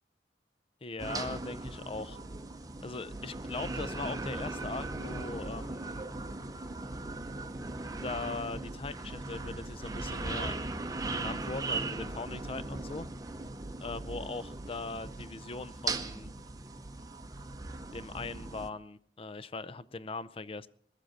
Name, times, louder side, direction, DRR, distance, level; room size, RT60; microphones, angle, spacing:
voice 1, 0.8-2.2 2.8-6.0 8.0-10.6 11.1-13.1 13.8-16.3 17.9-20.7, left 3 dB, 30° left, 16 dB, 0.5 m, -40 dB
sound 1, 1.0-18.7, right 2 dB, 20° right, 0.7 m, -38 dB
20.5 x 7.5 x 6.4 m, 0.63 s
head